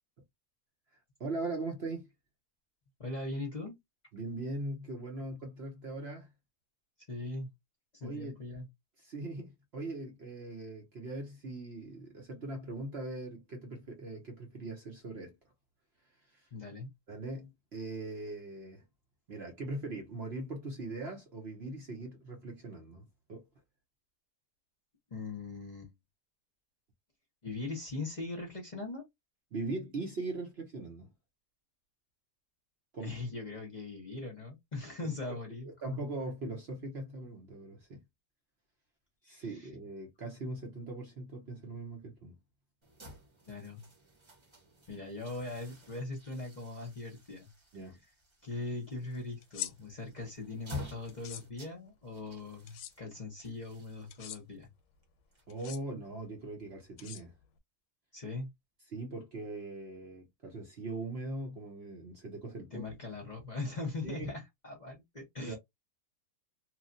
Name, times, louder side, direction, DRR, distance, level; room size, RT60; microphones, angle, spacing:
voice 1, 1.2-2.1 4.1-6.3 8.0-8.4 9.0-15.4 16.3-16.5 17.1-18.8 19.3-23.4 29.5-31.1 32.9-33.2 35.3-35.4 35.8-38.0 39.2-42.4 47.7-48.0 55.5-57.3 58.9-62.9 64.0-64.3 65.4-65.6, right 2 dB, 50° right, 0.9 m, -40 dB
voice 2, 3.0-3.8 7.1-7.5 7.9-8.7 16.5-16.9 25.1-25.9 27.4-29.1 33.0-36.0 39.2-39.7 43.5-43.8 44.9-47.5 48.4-54.7 58.1-58.5 62.7-65.6, left 2 dB, 35° left, 0.9 m, -40 dB
sound 1, 42.8-55.9, left 2 dB, 20° right, 0.9 m, -50 dB
sound 2, 49.4-49.7 51.1-51.4 52.7-52.9 54.1-54.4 55.5-55.8 57.0-57.6, left 12 dB, 90° left, 1.1 m, -42 dB
3.0 x 2.4 x 2.5 m
omnidirectional pair, 1.6 m